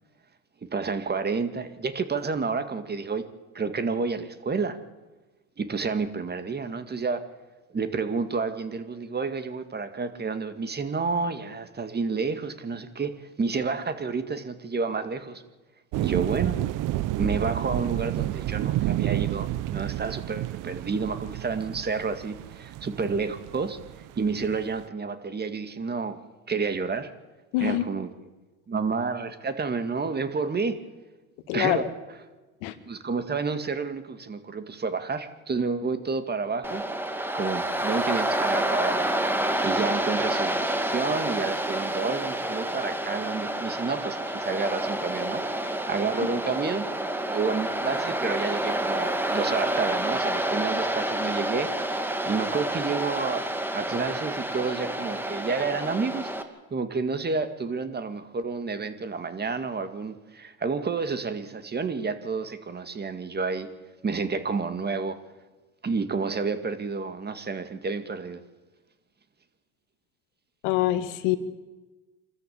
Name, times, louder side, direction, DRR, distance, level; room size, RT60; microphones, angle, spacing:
voice 1, 0.6-3.3 3.5-4.8 5.6-7.2 7.7-15.4 16.0-16.6 17.2-23.8 24.1-26.2 26.5-27.1 27.6-28.1 28.7-30.8 31.5-32.2 32.9-36.8 37.3-39.0 39.6-45.4 45.9-46.9 47.3-51.7 52.3-53.4 53.7-56.3 56.7-63.7 64.0-65.2 65.8-68.4, right 4 dB, 25° right, 9 dB, 2.1 m, -30 dB
sound 1, 15.9-24.8, right 15 dB, 60° right, 0.8 m, -30 dB
voice 2, 27.5-27.8 31.5-31.8 32.6-32.7 70.6-71.4, left 16 dB, 85° left, 10 dB, 1.9 m, -24 dB
Waves surf, 36.6-56.4, right 1 dB, 5° right, 2.3 m, -28 dB
26.0 x 14.0 x 8.7 m, 1.2 s
supercardioid pair, 90°, 36 cm